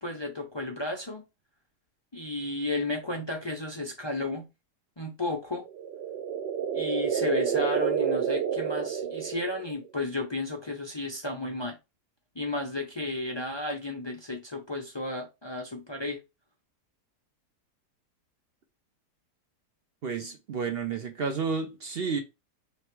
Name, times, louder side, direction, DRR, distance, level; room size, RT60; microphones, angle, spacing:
voice 1, 0.0-1.2 2.1-4.5 5.0-5.6 6.7-11.8 12.3-16.2, left 2 dB, 40° left, 0.4 m, -33 dB
sound 1, 5.6-9.9, right 8 dB, 85° right, 1.6 m, -29 dB
voice 2, 20.0-22.2, right 5 dB, 60° right, 0.6 m, -31 dB
3.3 x 3.2 x 4.5 m
omnidirectional pair, 1.8 m